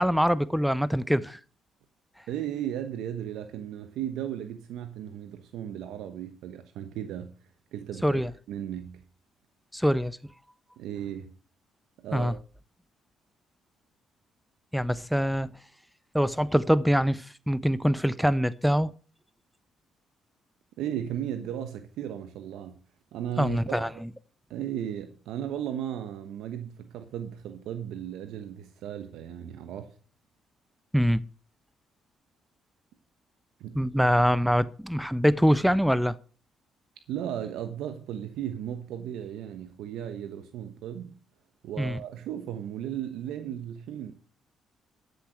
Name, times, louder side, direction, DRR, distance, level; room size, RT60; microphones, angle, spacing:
voice 1, 0.0-1.4 8.0-8.3 9.7-10.2 12.1-12.3 14.7-15.5 16.1-18.9 23.4-24.1 30.9-31.2 33.7-36.2 41.8-42.0, equal, ahead, 0.5 m, -24 dB
voice 2, 2.3-7.3 7.7-9.0 10.8-11.3 12.0-12.4 20.8-22.7 23.1-23.8 24.5-29.9 33.6-33.8 37.1-41.2 41.6-44.1, right 10 dB, 85° right, 1.1 m, -35 dB
12.5 x 6.9 x 6.2 m
cardioid pair, 105°, 0 cm